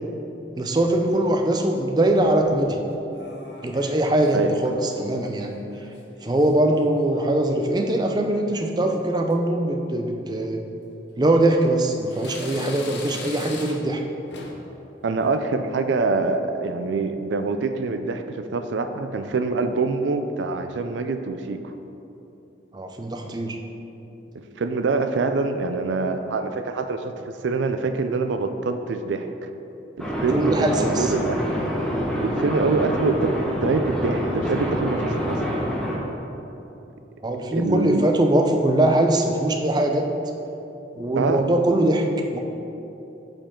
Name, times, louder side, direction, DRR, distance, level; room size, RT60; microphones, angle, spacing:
voice 1, 0.5-2.8 3.6-5.6 6.2-10.6 11.2-14.0 22.7-23.6 30.3-31.1 37.2-40.1 41.0-42.1 42.3-42.4, right 1 dB, 20° right, 3 dB, 0.4 m, -22 dB
sound 1, 0.8-1.5 2.2-2.7 3.1-4.4 4.6-5.0 5.3-7.3 7.6-8.1 8.6-9.0 9.3-9.4 10.3-10.5 11.1-11.8 12.1-14.0 14.3-14.7 15.1-15.4, left 3 dB, 70° left, 0.8 m, -42 dB
voice 2, 15.0-21.7 24.6-29.5 30.0-31.6 32.2-33.3 33.6-35.6 37.5-38.0 41.2-41.5, right 3 dB, 80° right, 8 dB, 0.4 m, -25 dB
sound 2, 30.0-36.0, equal, 5° left, 0.9 m, -26 dB
8.6 x 5.2 x 3.7 m, 3.0 s
head